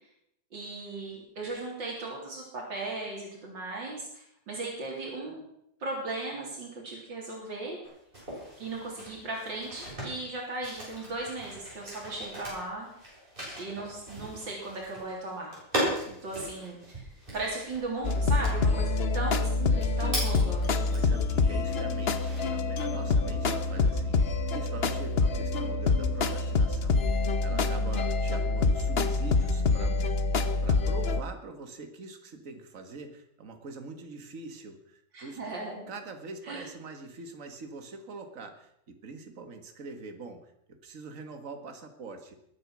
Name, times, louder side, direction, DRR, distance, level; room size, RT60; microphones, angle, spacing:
voice 1, 0.5-5.4 5.8-7.8 8.6-12.9 13.6-15.9 16.2-16.8 17.3-20.7 22.9-23.3 27.5-28.0 35.1-35.9 36.4-36.6, right 2 dB, 80° right, -2 dB, 4.1 m, -37 dB
sound 1, 7.8-21.2 21.7-22.7, equal, 25° right, 8.3 m, -38 dB
sound 2, 18.0-31.2, left 3 dB, 45° left, 1.0 m, -26 dB
voice 2, 18.5-18.8 20.9-30.0 30.4-35.6 35.9-42.4, right 3 dB, 45° right, 6 dB, 2.1 m, -44 dB
22.0 x 9.0 x 6.2 m, 0.75 s
omnidirectional pair, 2.0 m